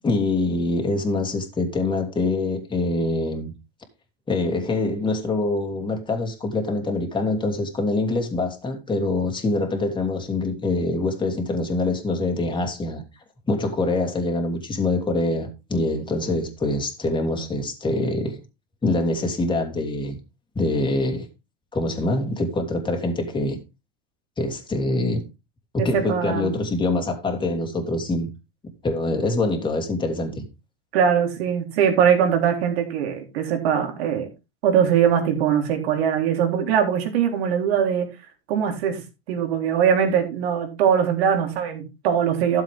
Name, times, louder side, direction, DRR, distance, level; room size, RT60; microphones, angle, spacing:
voice 1, 0.0-3.5 4.3-13.0 13.5-18.4 18.8-20.2 20.5-21.3 21.7-23.6 24.4-25.2 25.8-28.3 28.8-30.4, left 2 dB, 15° left, 3.1 m, -24 dB
voice 2, 25.9-26.6 30.9-34.3 34.6-38.1 38.5-39.0 39.3-42.6, right 8 dB, 75° right, 3.9 m, -21 dB
12.5 x 7.5 x 3.7 m
supercardioid pair, 115°, 31 cm